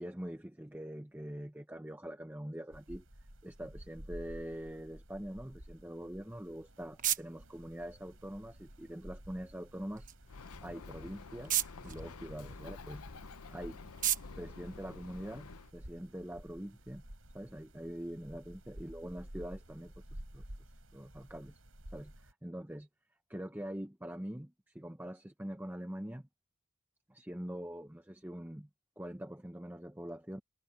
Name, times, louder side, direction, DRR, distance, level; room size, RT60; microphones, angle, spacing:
voice 1, 0.0-3.0 3.4-10.1 10.6-13.0 13.5-13.8 14.4-17.0 17.3-20.4 20.9-21.6 21.9-22.9 23.3-26.3 27.1-28.7 29.0-30.4, equal, 10° right, 0.8 m, -44 dB
sound 1, 2.7-22.3, equal, 70° right, 5.3 m, -53 dB
sound 2, 6.2-15.7, right 11 dB, 35° right, 1.2 m, -40 dB
Bird, 10.3-15.7, left 4 dB, 90° left, 0.8 m, -49 dB
head